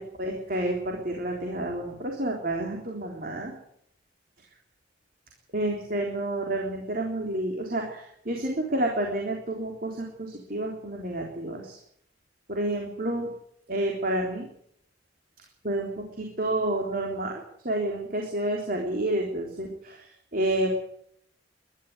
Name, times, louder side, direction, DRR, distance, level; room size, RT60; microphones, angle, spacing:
voice 1, 0.2-3.5 5.5-11.8 12.5-13.3 13.7-14.5 15.6-17.3 17.6-20.7, right 1 dB, 50° right, 1 dB, 3.6 m, -29 dB
21.0 x 13.0 x 9.6 m, 0.71 s
head